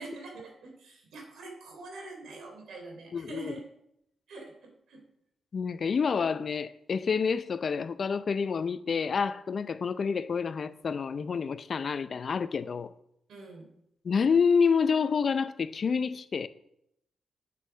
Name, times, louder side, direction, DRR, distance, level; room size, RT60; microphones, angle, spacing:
voice 1, 0.0-3.6 4.3-5.0 13.3-13.7, right 2 dB, 75° right, 3.3 m, -44 dB
voice 2, 3.1-3.5 5.5-12.9 14.0-16.5, left 6 dB, 60° left, 0.6 m, -28 dB
8.6 x 8.1 x 6.3 m
supercardioid pair, 50°, 0 cm